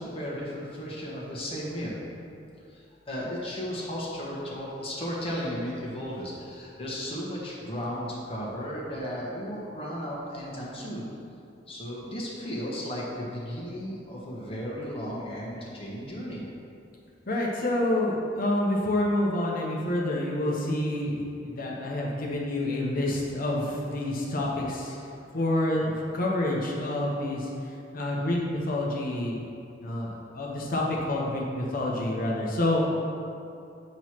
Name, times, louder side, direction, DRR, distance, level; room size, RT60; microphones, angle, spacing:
voice 1, 0.0-1.9 2.7-11.0 11.7-16.4 24.9-25.0, equal, 30° left, -5 dB, 1.2 m, -35 dB
voice 2, 17.3-24.9 25.3-27.5 27.9-29.4 29.8-32.8, left 1 dB, 50° left, -3 dB, 1.0 m, -28 dB
8.8 x 3.2 x 5.9 m, 2.5 s
head